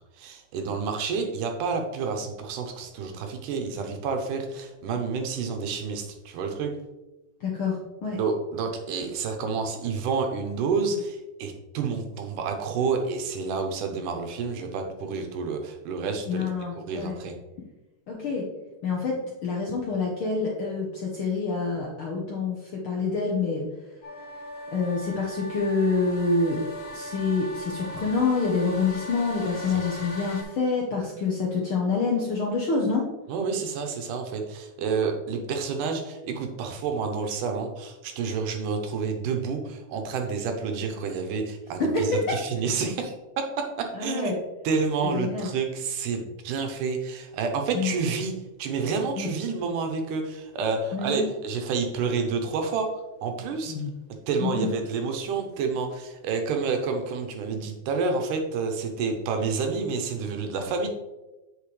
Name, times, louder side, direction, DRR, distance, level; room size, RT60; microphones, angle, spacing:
voice 1, 0.2-6.7 8.2-16.5 16.8-17.3 29.7-29.8 33.3-44.3 44.6-48.3 48.6-52.9 53.2-53.8 54.3-60.9, right 5 dB, 80° right, 4 dB, 2.5 m, -29 dB
voice 2, 7.4-8.2 16.3-17.1 18.1-18.5 18.8-23.6 24.7-26.6 26.9-33.0 41.8-42.3 43.9-44.4 45.0-45.5 47.7-47.9 49.2-49.3 50.9-51.2 53.7-53.9 54.4-54.7, left 4 dB, 65° left, -2 dB, 1.3 m, -27 dB
sound 1, 24.0-30.4, equal, 45° left, 2.2 m, -38 dB
8.4 x 6.4 x 3.2 m, 1.1 s
omnidirectional pair, 3.6 m